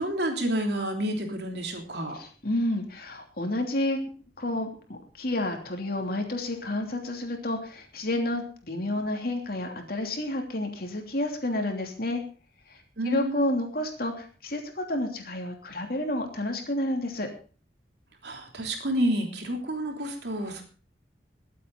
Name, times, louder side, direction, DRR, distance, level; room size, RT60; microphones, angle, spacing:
voice 1, 0.0-2.1 13.0-13.5 18.2-20.6, right 1 dB, 65° right, 3 dB, 3.3 m, -29 dB
voice 2, 2.1-4.0 4.4-12.2 12.7-12.8 13.0-17.3, left 1 dB, 55° left, 3 dB, 3.0 m, -30 dB
22.0 x 8.5 x 3.9 m, 0.38 s
head